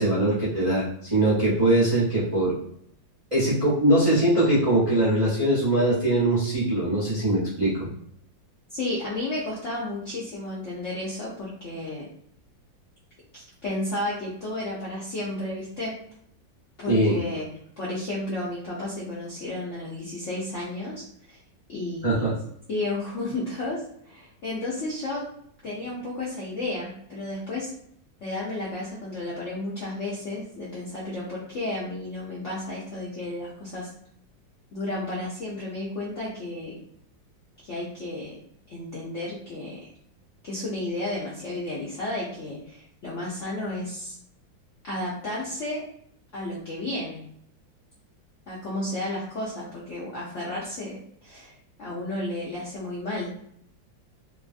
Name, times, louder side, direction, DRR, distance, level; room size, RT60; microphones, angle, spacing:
voice 1, 0.0-2.5 3.3-7.9 16.9-17.2 22.0-22.3, right 1 dB, 30° right, -9 dB, 0.6 m, -22 dB
voice 2, 8.7-12.0 13.3-15.9 16.8-17.5 17.8-21.0 21.3-21.4 21.7-22.3 22.7-25.3 25.6-27.7 28.2-33.9 34.7-36.8 37.6-38.3 38.7-39.9 40.4-44.2 44.8-45.8 46.3-47.2 48.5-51.5 51.8-53.3, left 2 dB, 65° left, -7 dB, 0.7 m, -32 dB
3.1 x 2.4 x 2.5 m, 0.67 s
omnidirectional pair, 2.1 m